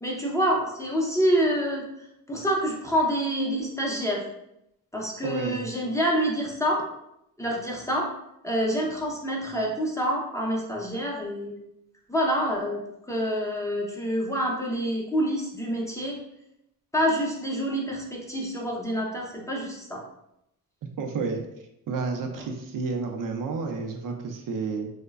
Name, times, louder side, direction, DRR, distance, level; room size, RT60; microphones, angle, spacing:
voice 1, 0.0-1.9 2.3-4.2 4.9-6.8 7.4-8.1 8.4-11.6 12.1-12.8 13.1-16.2 16.9-20.0, equal, 10° left, -2 dB, 0.6 m, -27 dB
voice 2, 5.2-5.7 21.0-21.4 21.9-24.9, right 4 dB, 65° right, 3 dB, 0.5 m, -30 dB
3.0 x 2.0 x 2.3 m, 0.81 s
cardioid pair, 75°, 35 cm